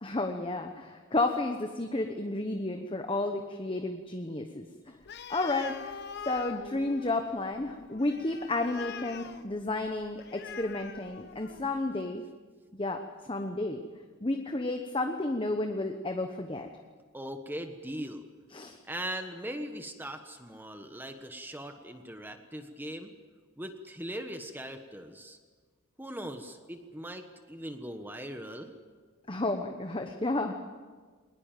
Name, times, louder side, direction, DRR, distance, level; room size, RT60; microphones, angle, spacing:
voice 1, 0.0-4.7 5.3-6.0 6.2-12.2 12.7-13.0 13.3-13.8 14.2-16.7 18.5-18.8 29.3-30.5, left 2 dB, 25° left, 5 dB, 1.1 m, -32 dB
Animal, 5.0-11.8, left 7 dB, 50° left, 0.9 m, -44 dB
voice 2, 17.1-18.2 18.9-23.1 23.6-25.4 26.0-28.7, right 1 dB, 10° right, 6 dB, 1.2 m, -40 dB
21.5 x 19.5 x 9.1 m, 1.5 s
head